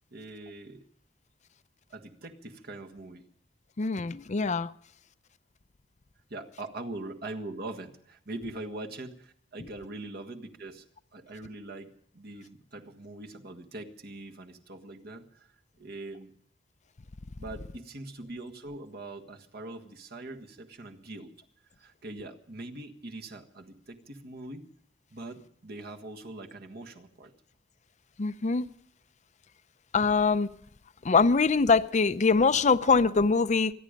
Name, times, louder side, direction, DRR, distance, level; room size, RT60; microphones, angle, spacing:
voice 1, 0.1-0.8 1.9-3.3 6.3-10.9 11.1-16.3 17.4-21.3 21.8-24.7 25.1-27.3, right 2 dB, 60° right, 1.6 m, -42 dB
voice 2, 3.8-4.7 28.2-28.7 29.9-30.5 31.0-33.7, left 4 dB, 40° left, 0.6 m, -23 dB
26.0 x 10.5 x 5.2 m
head